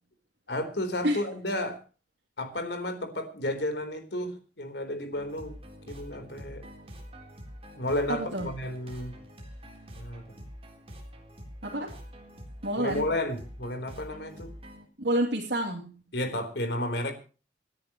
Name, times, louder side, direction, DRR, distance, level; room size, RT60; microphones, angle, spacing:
voice 1, 0.5-1.8 2.4-5.5 5.9-6.7 7.8-9.2 10.0-10.3 12.8-14.5 16.1-17.1, left 1 dB, 65° left, 7 dB, 3.9 m, -32 dB
sound 1, 5.1-14.9, equal, 35° right, 3.7 m, -46 dB
voice 2, 8.1-8.5 11.6-11.9 12.6-13.1 15.0-16.0, right 1 dB, 75° right, -3 dB, 2.9 m, -29 dB
28.0 x 10.5 x 3.1 m, 0.36 s
head